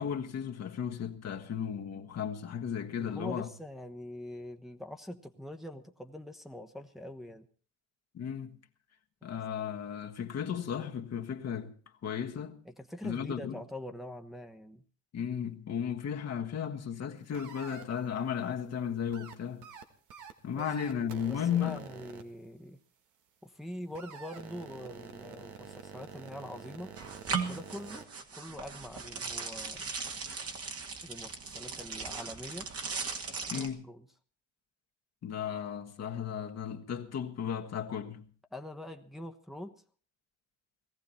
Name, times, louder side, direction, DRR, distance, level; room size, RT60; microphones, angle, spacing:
voice 1, 0.0-3.5 8.1-8.6 9.2-11.7 12.0-12.6 13.0-13.6 15.1-19.7 20.4-21.8 33.5-33.8 35.2-38.3, left 8 dB, 60° left, 1.5 m, -35 dB
voice 2, 3.0-7.5 12.6-14.8 20.5-20.7 21.2-22.8 23.4-27.0 27.5-28.1 28.4-29.9 31.0-32.7 33.5-34.1 38.5-39.7, left 1 dB, ahead, 1.2 m, -44 dB
sound 1, 17.3-17.8 19.1-19.3 19.6-19.8 20.1-20.3 20.6-22.2 23.9-28.1, right 7 dB, 85° right, 1.7 m, -47 dB
sound 2, 27.0-33.7, right 5 dB, 50° right, 2.1 m, -38 dB
19.0 x 14.5 x 4.3 m
cardioid pair, 90°, 30 cm